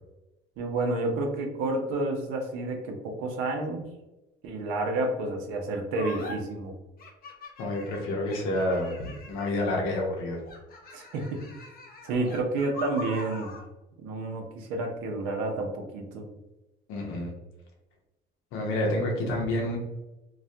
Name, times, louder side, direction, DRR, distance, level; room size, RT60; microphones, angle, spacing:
voice 1, 0.6-3.8 4.4-6.7 10.9-11.4 12.0-13.5 14.0-16.2, right 2 dB, 90° right, 3 dB, 0.6 m, -30 dB
sound 1, 5.9-6.4 7.0-9.8 10.4-13.7, left 2 dB, 45° left, 0.7 m, -42 dB
voice 2, 7.6-10.4 16.9-17.3 18.5-19.8, left 1 dB, 80° left, -1 dB, 0.6 m, -29 dB
2.3 x 2.1 x 2.6 m, 1.0 s
cardioid pair, 95°, 21 cm